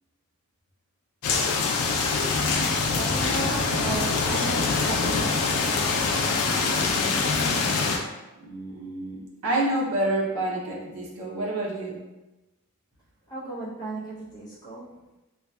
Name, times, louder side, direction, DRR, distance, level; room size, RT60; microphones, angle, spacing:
sound 1, 1.2-8.0, left 4 dB, 75° left, 0.4 m, -24 dB
voice 1, 2.9-5.6 13.3-14.9, right 2 dB, 20° left, -7 dB, 0.6 m, -35 dB
voice 2, 8.4-12.0, right 1 dB, 75° right, -4 dB, 0.6 m, -28 dB
2.6 x 2.2 x 2.2 m, 1.0 s
head